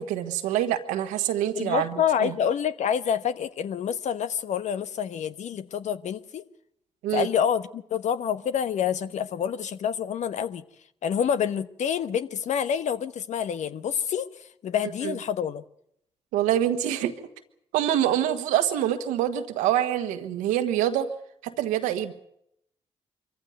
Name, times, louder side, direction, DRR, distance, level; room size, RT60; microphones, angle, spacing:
voice 1, 0.0-2.3 7.0-7.3 15.0-15.2 16.3-17.2 17.7-21.1 21.4-22.1, right 11 dB, 80° right, 1.5 m, -25 dB
voice 2, 1.5-6.4 7.1-10.6 11.0-14.3 14.6-15.6, left 8 dB, 65° left, 1.1 m, -27 dB
24.5 x 15.0 x 9.2 m
hypercardioid pair, 40°, 13 cm